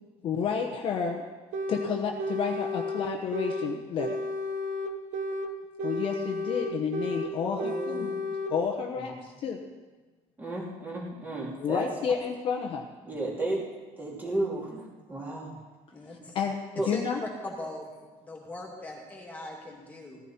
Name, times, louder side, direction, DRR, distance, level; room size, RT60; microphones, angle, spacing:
voice 1, 0.2-1.3 1.7-4.2 5.8-8.1 8.5-9.6 11.6-12.9 16.3-16.6 16.8-17.2, left 6 dB, 40° left, 2 dB, 1.0 m, -30 dB
sound 1, 1.5-1.9 2.2-3.7 4.0-5.5 5.8-7.3 7.6-8.5, left 1 dB, 65° right, 1.2 m, -32 dB
voice 2, 7.4-8.2 8.9-9.0 10.4-11.9 13.0-13.7 14.0-15.6 16.2-16.3 16.7-16.9, right 2 dB, 15° right, -4 dB, 2.9 m, -33 dB
voice 3, 15.9-16.3 16.9-17.0 17.4-17.9 18.2-20.2, left 2 dB, 10° left, -1 dB, 2.6 m, -40 dB
16.5 x 14.0 x 4.4 m, 1.3 s
cardioid pair, 180°, 14 cm